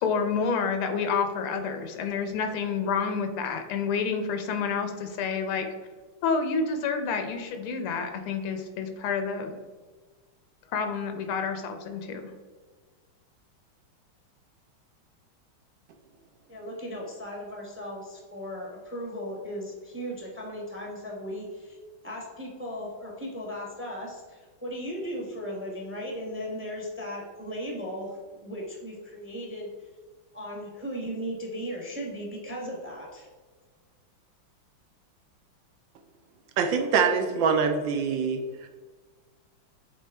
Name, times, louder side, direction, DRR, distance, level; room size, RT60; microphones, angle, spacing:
voice 1, 0.0-5.7 6.2-9.6 10.7-12.3, left 5 dB, 90° left, 6 dB, 1.7 m, -29 dB
voice 2, 16.5-21.8 22.0-29.7 30.3-33.3, equal, 10° right, -1 dB, 0.5 m, -37 dB
voice 3, 36.6-38.4, right 5 dB, 75° right, 5 dB, 1.2 m, -24 dB
7.3 x 3.7 x 3.4 m, 1.4 s
omnidirectional pair, 2.3 m